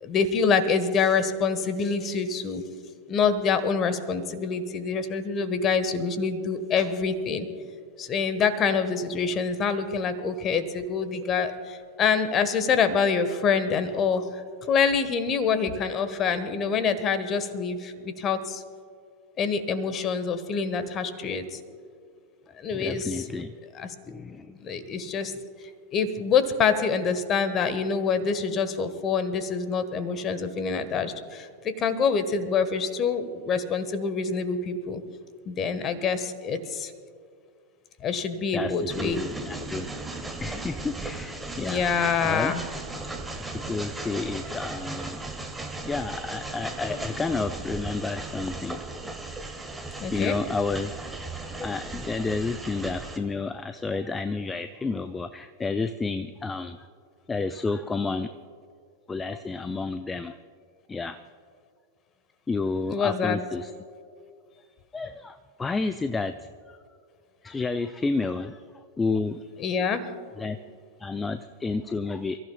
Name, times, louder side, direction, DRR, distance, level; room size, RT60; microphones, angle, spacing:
voice 1, 0.0-2.6 3.1-7.5 8.0-14.4 14.7-18.6 19.4-21.6 22.6-23.3 23.7-23.9 24.6-25.3 25.9-35.0 35.4-36.9 38.0-39.7 41.6-42.6 50.0-50.4 62.9-63.4 69.6-70.0, left 5 dB, 30° left, 11 dB, 1.3 m, -26 dB
voice 2, 22.7-23.5 24.1-24.6 38.5-38.7 39.0-40.1 40.4-41.8 42.2-42.5 43.5-45.2 45.8-48.8 50.1-50.9 51.6-56.8 57.3-58.3 59.1-60.4 60.9-61.2 62.5-63.7 64.9-66.3 66.7-66.8 67.4-68.6 69.0-69.4 70.4-70.6 71.0-72.4, left 3 dB, 15° left, 11 dB, 0.4 m, -30 dB
Train, 38.9-53.2, right 2 dB, 10° right, 1.5 m, -36 dB
28.5 x 15.0 x 2.3 m, 2.3 s
figure-of-eight pair, 90°, 0 cm